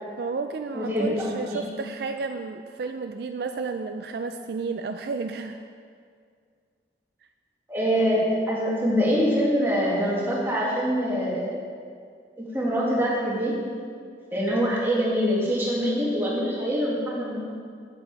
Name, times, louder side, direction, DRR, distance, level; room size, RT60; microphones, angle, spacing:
voice 1, 0.2-5.6, right 4 dB, 60° right, 7 dB, 0.3 m, -32 dB
voice 2, 0.7-1.7 7.7-11.5 12.4-13.5 14.3-17.4, equal, 15° right, -6 dB, 1.9 m, -24 dB
8.6 x 7.6 x 4.5 m, 2.1 s
head